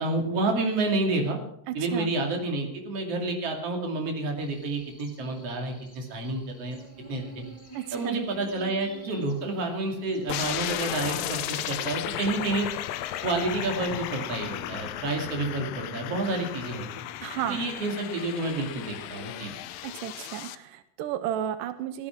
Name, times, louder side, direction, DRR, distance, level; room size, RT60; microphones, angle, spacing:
voice 1, 0.0-1.4 1.7-6.8 7.1-7.4 7.9-12.7 13.2-16.9 17.5-19.5, right 2 dB, 50° right, 2 dB, 3.3 m, -29 dB
voice 2, 1.7-2.1 7.7-8.2 17.2-17.6 19.8-22.1, right 11 dB, 90° right, 12 dB, 2.4 m, -33 dB
Buzz, 4.4-14.4, right 3 dB, 30° left, 7.0 m, -50 dB
sound 1, 10.3-20.6, left 12 dB, 75° left, 1.6 m, -34 dB
15.5 x 11.5 x 5.9 m, 0.75 s
omnidirectional pair, 3.7 m